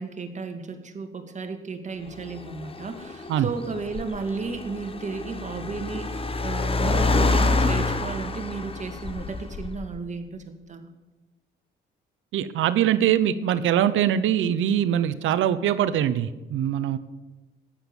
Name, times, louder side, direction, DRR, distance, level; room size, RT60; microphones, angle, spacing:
voice 1, 0.0-10.9, right 4 dB, 35° right, 6 dB, 2.1 m, -34 dB
Car, 2.1-10.0, left 3 dB, 30° left, 1.3 m, -27 dB
voice 2, 12.3-17.0, right 10 dB, 80° right, 13 dB, 0.9 m, -23 dB
14.5 x 10.0 x 7.1 m, 1.1 s
cardioid pair, 90°, 20 cm